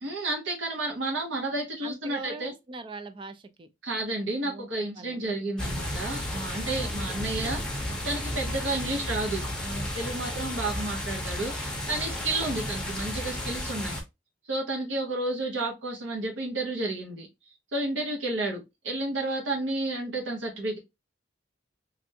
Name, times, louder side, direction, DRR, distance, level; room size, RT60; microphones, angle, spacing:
voice 1, 0.0-2.5 3.8-7.6 8.0-14.0 14.5-17.3 17.7-20.8, right 2 dB, 80° right, 0.9 m, -31 dB
voice 2, 1.8-3.7 4.4-4.7 5.0-5.4 12.3-12.6, right 3 dB, 25° right, 0.3 m, -42 dB
sound 1, 5.6-14.0, left 1 dB, 5° left, 0.7 m, -33 dB
3.3 x 2.5 x 2.7 m
head